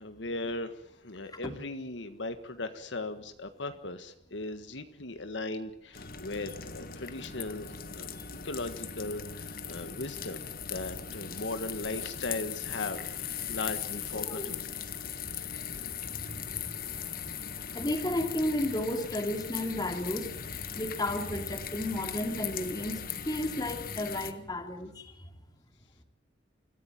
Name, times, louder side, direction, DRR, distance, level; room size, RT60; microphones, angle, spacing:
voice 1, 0.0-14.6, left 2 dB, 70° left, 9 dB, 1.6 m, -38 dB
sound 1, 5.9-24.3, left 8 dB, 50° left, 1.5 m, -39 dB
voice 2, 14.2-14.5 15.1-15.2 15.9-17.4 17.7-25.2, left 1 dB, 20° left, 6 dB, 2.6 m, -34 dB
26.0 x 15.0 x 9.0 m, 0.70 s
head